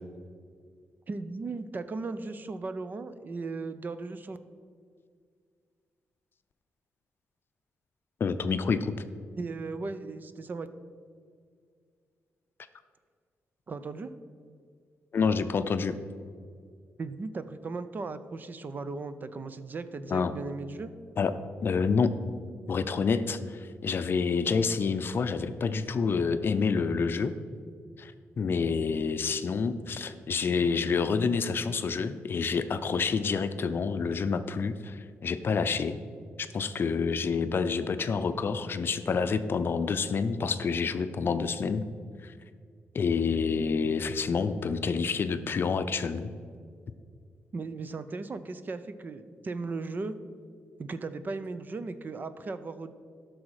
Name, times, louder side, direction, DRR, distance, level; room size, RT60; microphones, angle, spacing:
voice 1, 1.1-4.4 9.4-10.7 13.7-14.1 17.0-20.9 47.5-50.1 50.8-52.9, right 3 dB, 40° right, 12 dB, 0.6 m, -37 dB
voice 2, 8.2-8.9 15.1-16.0 20.1-20.3 21.2-21.3 21.6-22.1 22.7-27.3 28.0-36.0 36.4-41.8 42.2-42.3 42.9-46.3, left 5 dB, 50° left, 10 dB, 0.5 m, -28 dB
12.5 x 6.3 x 4.9 m, 2.1 s
cardioid pair, 110°, 5 cm